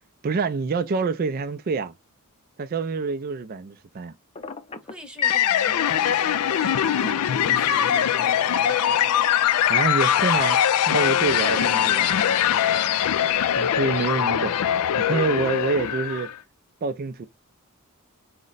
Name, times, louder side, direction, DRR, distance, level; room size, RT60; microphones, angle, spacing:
voice 1, 0.2-1.9 2.6-4.1 9.7-10.6 10.9-12.1 13.6-14.5 15.0-16.3 16.8-17.3, right 4 dB, 40° right, 0.4 m, -26 dB
Telephone, 4.3-5.5, left 3 dB, 25° left, 0.5 m, -38 dB
voice 2, 4.8-9.4 11.5-12.0, right 2 dB, 5° right, 0.8 m, -42 dB
sound 1, 5.2-16.4, left 9 dB, 80° left, 0.4 m, -22 dB
4.9 x 2.1 x 3.8 m
head